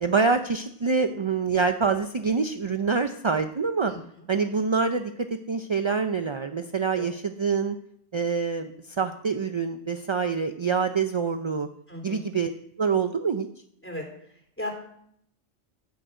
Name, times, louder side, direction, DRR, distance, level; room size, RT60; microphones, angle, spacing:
voice 1, 0.0-3.9 4.3-5.1 5.5-7.8 8.1-11.7 12.0-12.5 12.8-13.5, right 5 dB, 35° right, 7 dB, 0.5 m, -26 dB
voice 2, 11.9-12.2 13.8-14.0 14.6-14.7, left 1 dB, 10° left, 2 dB, 3.5 m, -35 dB
15.0 x 6.3 x 7.9 m, 0.72 s
omnidirectional pair, 1.2 m